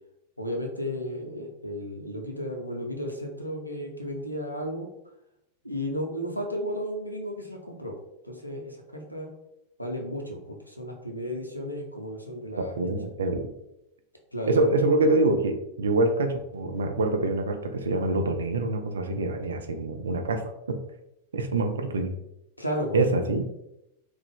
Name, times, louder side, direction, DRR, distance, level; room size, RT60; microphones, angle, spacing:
voice 1, 0.4-4.9 5.6-8.0 8.2-9.3 9.8-12.9 14.3-14.7 22.6-23.0, equal, 90° left, 2 dB, 0.6 m, -33 dB
voice 2, 12.6-13.5 14.5-20.8 21.3-22.2 22.9-23.4, right 2 dB, 70° right, 6 dB, 0.4 m, -25 dB
3.3 x 2.3 x 3.4 m, 0.84 s
figure-of-eight pair, 90°, 0 cm